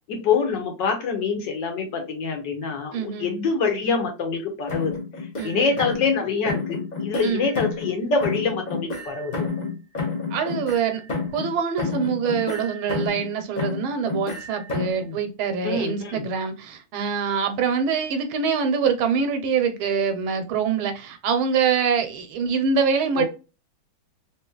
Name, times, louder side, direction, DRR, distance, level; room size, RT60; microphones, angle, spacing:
voice 1, 0.1-4.9 5.4-9.3 15.0-15.2 15.6-16.3 23.2-23.3, left 5 dB, 65° left, 1.5 m, -25 dB
voice 2, 2.9-3.3 5.4-5.7 7.2-7.4 10.3-11.0 11.3-23.2, right 6 dB, 80° right, 1.5 m, -24 dB
sound 1, 4.7-6.2 6.4-7.9 8.2-11.5 11.8-13.3 13.6-15.0, left 4 dB, 40° left, 0.6 m, -30 dB
3.7 x 3.0 x 2.3 m
omnidirectional pair, 2.2 m